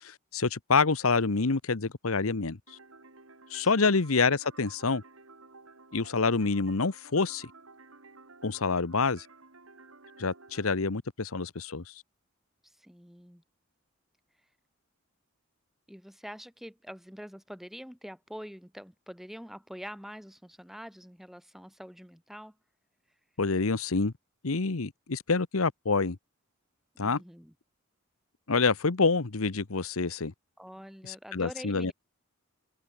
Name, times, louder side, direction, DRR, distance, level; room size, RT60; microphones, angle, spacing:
voice 1, 0.0-2.8 3.5-5.0 5.9-7.5 8.4-9.3 10.2-11.9 23.4-24.1 24.4-26.2 27.0-27.2 28.5-30.3 31.0-31.9, left 4 dB, 85° left, 1.1 m, -27 dB
sound 1, 2.7-10.7, right 3 dB, 80° right, 4.0 m, -54 dB
voice 2, 12.6-13.4 15.9-22.5 27.0-27.5 30.6-31.9, equal, ahead, 4.9 m, -45 dB
head